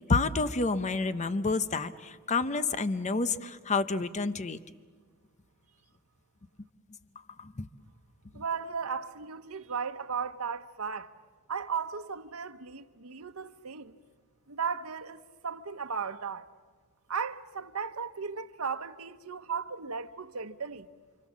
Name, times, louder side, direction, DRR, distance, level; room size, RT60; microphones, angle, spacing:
voice 1, 0.0-4.6 7.4-7.7 8.3-8.4, left 3 dB, 35° left, 0.7 m, -29 dB
voice 2, 8.3-11.2 11.5-13.9 14.5-16.5 17.1-20.9, right 6 dB, 90° right, 1.1 m, -36 dB
29.5 x 25.0 x 7.3 m
head